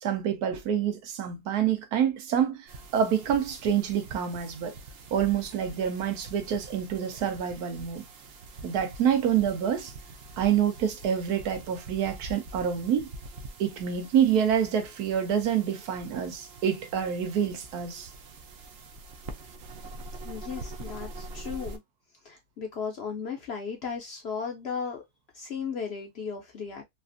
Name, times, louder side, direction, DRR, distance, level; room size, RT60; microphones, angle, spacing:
voice 1, 0.0-4.8 5.1-8.1 8.6-9.9 10.4-13.1 13.6-18.1, right 8 dB, 85° right, 1.3 m, -27 dB
sound 1, 2.7-21.8, right 2 dB, 60° right, 0.6 m, -45 dB
voice 2, 20.2-21.8 22.2-25.0 25.3-26.8, left 6 dB, 60° left, 0.7 m, -35 dB
3.2 x 2.4 x 2.5 m
omnidirectional pair, 1.6 m